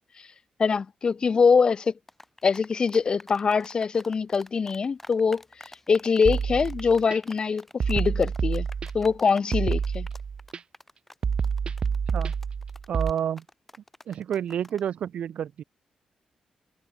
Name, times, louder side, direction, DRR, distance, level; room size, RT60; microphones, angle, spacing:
voice 1, 0.6-1.9 2.4-8.7 8.9-10.1, left 5 dB, 40° left, 0.7 m, -23 dB
sound 1, 2.1-14.9, left 1 dB, 10° left, 5.9 m, -48 dB
sound 2, 6.2-7.2 7.8-9.1 9.5-10.6 11.2-13.1, right 6 dB, 50° right, 1.0 m, -28 dB
voice 2, 12.9-13.4 14.1-15.6, right 9 dB, 70° right, 0.4 m, -29 dB
cardioid pair, 95°, 2 cm